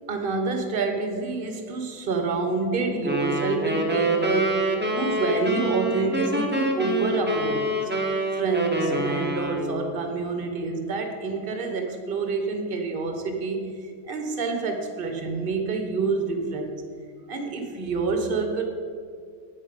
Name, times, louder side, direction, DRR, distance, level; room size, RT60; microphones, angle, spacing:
voice 1, 0.1-4.5 4.9-7.9 8.3-13.6 14.1-16.8 17.3-18.7, right 4 dB, 40° right, 5 dB, 0.9 m, -27 dB
sound 1, 3.0-9.9, right 1 dB, 15° right, 0.3 m, -26 dB
9.5 x 8.4 x 5.4 m, 2.2 s
omnidirectional pair, 2.3 m